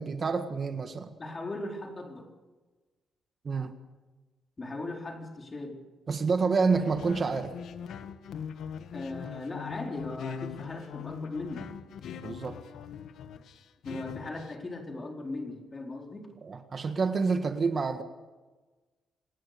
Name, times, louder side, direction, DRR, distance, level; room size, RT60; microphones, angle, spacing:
voice 1, 0.0-1.1 3.4-3.7 6.1-7.5 12.2-12.6 16.4-18.0, right 4 dB, 40° right, 7 dB, 1.6 m, -28 dB
voice 2, 1.2-2.3 4.6-5.8 8.9-11.8 13.8-16.3, left 2 dB, 30° left, 2 dB, 4.2 m, -38 dB
sound 1, 6.7-14.5, left 8 dB, 75° left, 1.5 m, -41 dB
26.5 x 19.0 x 6.8 m, 1.3 s
cardioid pair, 115°, 0 cm